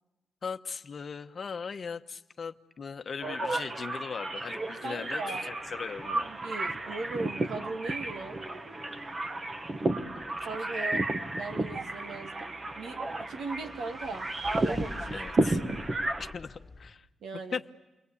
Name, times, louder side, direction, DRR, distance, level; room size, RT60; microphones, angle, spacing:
voice 1, 0.4-6.3 10.1-10.8 15.1-15.6 16.2-17.1 17.5-17.7, left 5 dB, 45° left, 9 dB, 1.0 m, -39 dB
sound 1, 3.2-16.3, right 2 dB, 30° right, 1.4 m, -33 dB
sound 2, 4.4-16.9, left 3 dB, 20° left, 2.3 m, -52 dB
voice 2, 4.8-5.5 6.2-8.5 10.4-11.1 11.3-14.3 14.6-15.2 17.2-17.6, right 3 dB, 80° right, 4 dB, 2.6 m, -38 dB
29.5 x 23.0 x 8.4 m, 1.0 s
cardioid pair, 115°, 0 cm